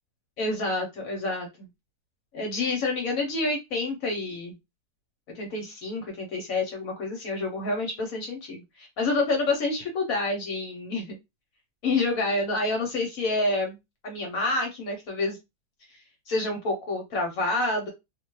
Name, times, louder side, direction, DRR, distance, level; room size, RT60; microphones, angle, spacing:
voice 1, 0.4-1.7 2.3-4.6 5.3-11.2 11.8-13.8 14.0-15.4 16.3-17.9, left 2 dB, 65° left, 2 dB, 1.2 m, -28 dB
2.7 x 2.2 x 3.0 m, 0.22 s
omnidirectional pair, 1.7 m